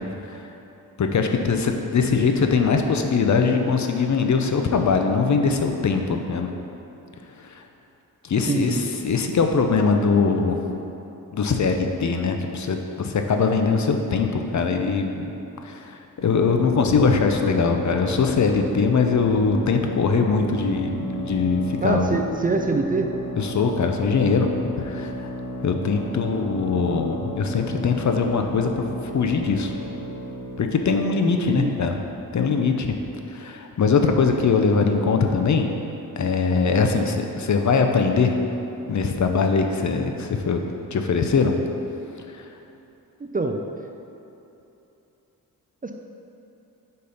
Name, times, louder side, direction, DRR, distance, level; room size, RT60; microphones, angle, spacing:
voice 1, 1.0-6.5 7.4-7.6 8.2-10.6 11.3-15.3 15.6-22.2 23.4-24.5 24.8-25.3 25.6-28.8 29.1-29.7 30.6-32.0 32.3-33.0 33.3-35.7 36.2-38.3 38.9-40.6 40.9-41.5 42.3-42.5, left 5 dB, 55° left, 4 dB, 0.6 m, -22 dB
voice 2, 8.5-8.9 21.8-23.1 31.2-31.8 43.3-43.6 45.8-45.9, right 3 dB, 25° right, 3 dB, 0.4 m, -24 dB
sound 1, 16.2-30.7, left 1 dB, 90° left, 1.2 m, -33 dB
4.9 x 4.4 x 5.4 m, 2.9 s
wide cardioid pair, 80°, 36 cm